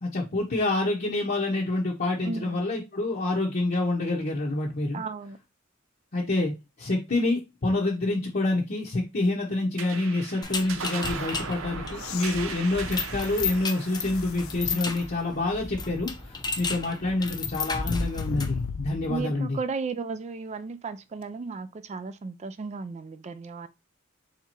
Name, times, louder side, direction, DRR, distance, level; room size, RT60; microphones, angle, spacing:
voice 1, 0.0-5.0 6.1-19.6, left 2 dB, 45° left, 0.8 m, -27 dB
voice 2, 2.2-2.6 4.9-5.4 19.1-23.7, right 4 dB, 35° right, 0.3 m, -34 dB
sound 1, 9.8-16.6, right 5 dB, 85° right, 0.6 m, -39 dB
sound 2, 10.4-18.7, left 4 dB, 20° left, 0.6 m, -33 dB
sound 3, 11.9-14.7 15.3-15.4 18.1-19.4 21.2-21.3, left 8 dB, 80° left, 0.3 m, -38 dB
3.5 x 2.8 x 4.3 m
head